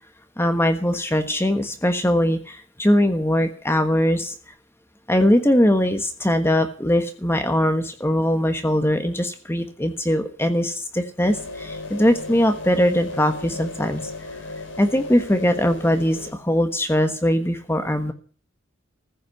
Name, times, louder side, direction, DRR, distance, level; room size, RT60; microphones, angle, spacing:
voice 1, 0.4-4.5 5.1-14.1 14.8-18.1, equal, 10° left, 8 dB, 1.3 m, -21 dB
sound 1, 11.2-16.3, left 2 dB, 60° left, 4.3 m, -36 dB
15.0 x 8.4 x 8.0 m, 0.41 s
head